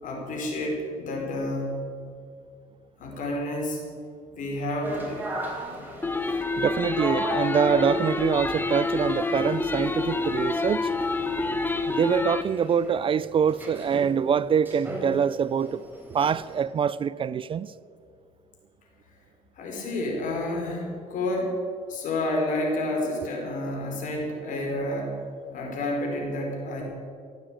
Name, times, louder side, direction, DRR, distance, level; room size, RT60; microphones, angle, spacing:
voice 1, 0.0-1.8 3.0-3.8 4.3-5.2 5.7-5.8 19.6-21.6 21.9-25.2 25.5-26.8, left 1 dB, 60° left, 4.7 m, -30 dB
sound 1, 4.8-16.6, right 1 dB, 15° right, 3.9 m, -38 dB
sound 2, 6.0-12.4, left 3 dB, 15° left, 0.9 m, -27 dB
voice 2, 6.6-10.9 11.9-15.8 16.1-17.7, right 7 dB, 35° right, 0.4 m, -25 dB
15.5 x 9.1 x 8.8 m
cardioid pair, 115°, 15 cm